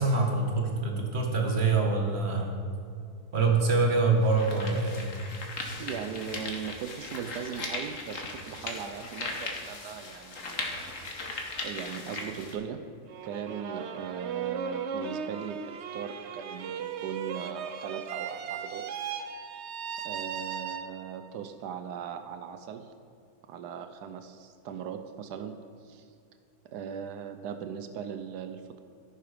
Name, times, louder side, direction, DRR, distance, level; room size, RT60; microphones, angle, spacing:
voice 1, 0.0-2.5 3.3-5.0, right 3 dB, 40° right, 2 dB, 2.0 m, -25 dB
sound 1, 3.3-3.4 4.1-12.5, left 3 dB, 55° left, 1.7 m, -38 dB
voice 2, 5.8-10.9 11.6-12.8 13.2-18.9 20.0-22.9 23.4-26.1 26.6-28.8, right 7 dB, 90° right, 8 dB, 1.3 m, -39 dB
sound 2, 13.1-21.3, right 7 dB, 55° right, 0.8 m, -37 dB
13.5 x 10.5 x 5.2 m, 2.4 s
omnidirectional pair, 1.7 m